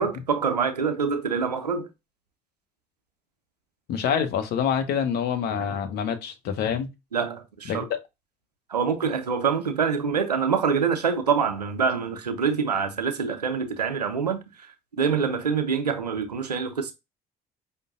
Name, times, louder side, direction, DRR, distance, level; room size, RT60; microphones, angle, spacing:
voice 1, 0.0-1.9 7.1-7.9 8.7-14.4 15.0-16.9, right 6 dB, 90° right, 0.5 m, -25 dB
voice 2, 3.9-6.9 7.7-7.8, left 7 dB, 55° left, 0.9 m, -26 dB
5.3 x 2.2 x 3.7 m
figure-of-eight pair, 50°, 20 cm